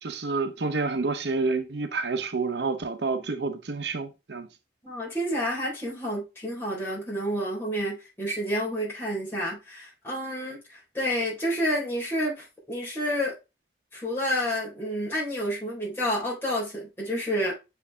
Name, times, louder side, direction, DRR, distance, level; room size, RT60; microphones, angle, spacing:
voice 1, 0.0-4.5, right 3 dB, 70° right, 0.7 m, -29 dB
voice 2, 4.8-13.3 13.9-17.5, equal, 15° left, 3.8 m, -29 dB
7.1 x 4.7 x 3.4 m
head